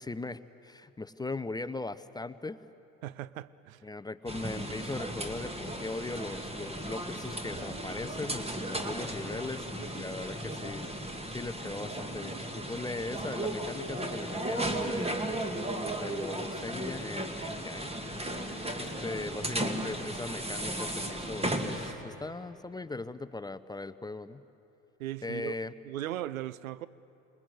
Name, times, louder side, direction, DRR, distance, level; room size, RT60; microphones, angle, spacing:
voice 1, 0.0-2.6 3.8-10.9 11.3-15.3 15.9-24.4 25.2-25.7, left 3 dB, 10° left, 13 dB, 0.6 m, -39 dB
voice 2, 3.0-3.8 25.0-25.5 25.8-26.9, right 13 dB, 75° right, 18 dB, 0.7 m, -37 dB
sound 1, 4.3-21.9, right 1 dB, 15° right, 2.3 m, -35 dB
27.0 x 20.5 x 8.0 m, 3.0 s
figure-of-eight pair, 60°, 41 cm